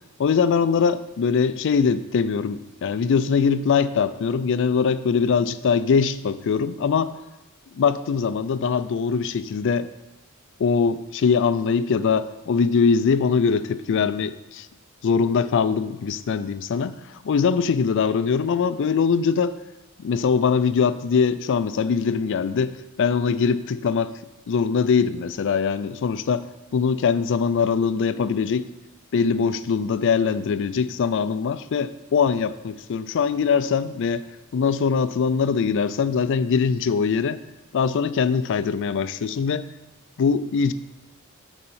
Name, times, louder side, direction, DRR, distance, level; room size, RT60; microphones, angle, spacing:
voice 1, 0.2-7.2 7.7-9.9 10.6-14.7 15.0-19.5 20.0-24.1 24.5-26.5 26.7-28.6 29.1-34.3 34.5-37.4 37.7-39.7 40.2-40.7, left 6 dB, 60° left, 15 dB, 0.4 m, -22 dB
6.9 x 5.2 x 5.5 m, 1.0 s
head